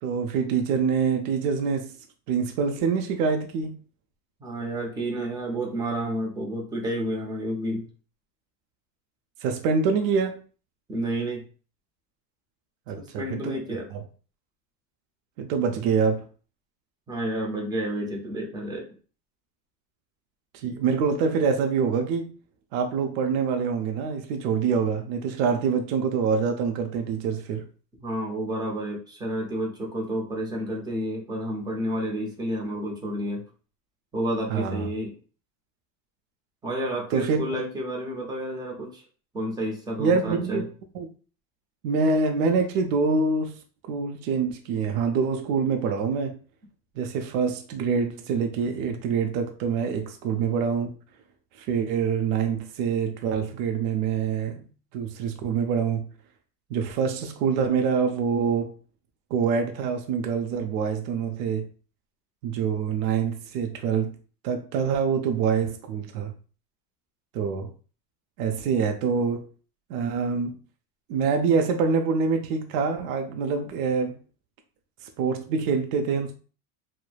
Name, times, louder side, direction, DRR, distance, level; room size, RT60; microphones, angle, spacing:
voice 1, 0.0-1.9 2.3-3.8 9.4-10.4 12.9-13.6 13.9-14.0 15.4-16.3 20.6-22.3 22.7-27.7 34.5-34.9 37.1-37.4 40.0-40.6 40.9-41.1 41.8-43.5 43.9-46.4 47.0-50.9 51.6-54.7 54.9-56.0 56.7-58.7 59.3-61.7 62.4-64.1 64.4-66.3 67.3-67.7 68.4-69.4 69.9-70.5 71.1-74.2 75.2-76.3, right 5 dB, 65° right, 0.5 m, -25 dB
voice 2, 4.4-7.9 10.9-11.4 13.0-13.9 17.1-18.9 28.0-33.5 34.1-35.2 36.6-39.0 39.3-40.7, right 1 dB, 10° right, 0.4 m, -30 dB
3.0 x 2.0 x 2.3 m
supercardioid pair, 135°, 45 cm